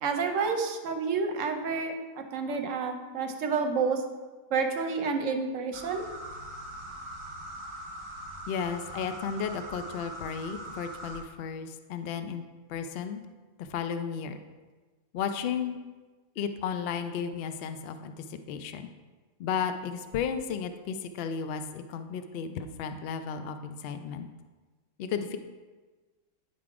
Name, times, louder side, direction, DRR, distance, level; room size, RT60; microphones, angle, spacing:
voice 1, 0.0-4.0 4.5-6.1, right 5 dB, 65° right, 6 dB, 1.0 m, -29 dB
sound 1, 5.7-11.2, right 1 dB, 25° right, 0.7 m, -42 dB
voice 2, 8.5-12.4 12.7-13.2 13.6-14.4 15.1-15.8 16.4-18.9 19.4-24.3 25.0-25.4, left 7 dB, 75° left, 8 dB, 0.5 m, -34 dB
9.5 x 3.7 x 4.7 m, 1.3 s
omnidirectional pair, 1.6 m